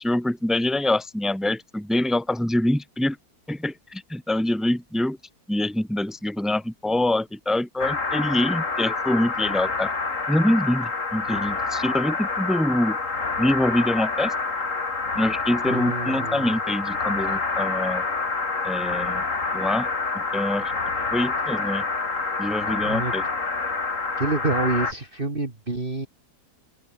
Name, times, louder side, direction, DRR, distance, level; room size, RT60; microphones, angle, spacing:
voice 1, 0.0-3.2 3.5-5.2 5.5-9.9 10.3-13.0 13.4-14.3 15.2-18.0 18.6-19.2 19.5-19.9 20.2-20.7 21.1-21.8 22.4-23.2, left 1 dB, ahead, 1.9 m, -25 dB
sound 1, 7.8-24.9, left 4 dB, 50° left, 3.1 m, -27 dB
voice 2, 15.6-16.6 22.8-23.1 24.2-26.1, right 3 dB, 35° right, 2.9 m, -27 dB
open air
omnidirectional pair, 1.7 m